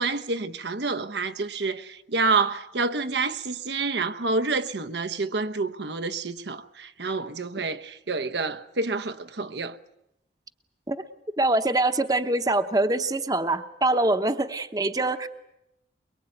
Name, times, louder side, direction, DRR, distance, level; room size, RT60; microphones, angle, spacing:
voice 1, 0.0-9.8, right 3 dB, 80° right, 1.0 m, -28 dB
voice 2, 11.4-15.3, right 2 dB, 20° right, 0.9 m, -24 dB
23.5 x 23.0 x 8.9 m
head